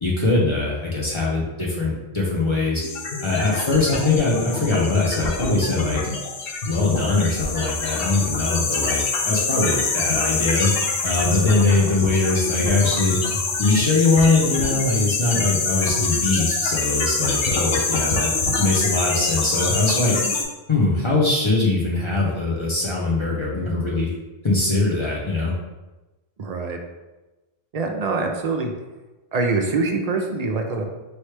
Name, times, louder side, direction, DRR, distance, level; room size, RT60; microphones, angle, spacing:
voice 1, 0.0-2.9 3.2-6.0 6.6-9.0 9.2-10.7 11.0-13.2 13.6-18.3 18.6-20.2 20.7-24.1 24.4-25.5, left 3 dB, 30° left, -4 dB, 0.7 m, -21 dB
sound 1, 2.8-20.4, left 4 dB, 65° left, 0.8 m, -25 dB
voice 2, 26.4-26.8 27.7-28.7 29.3-30.8, right 3 dB, 50° right, 3 dB, 0.5 m, -24 dB
4.6 x 3.1 x 3.2 m, 1.1 s
omnidirectional pair, 1.1 m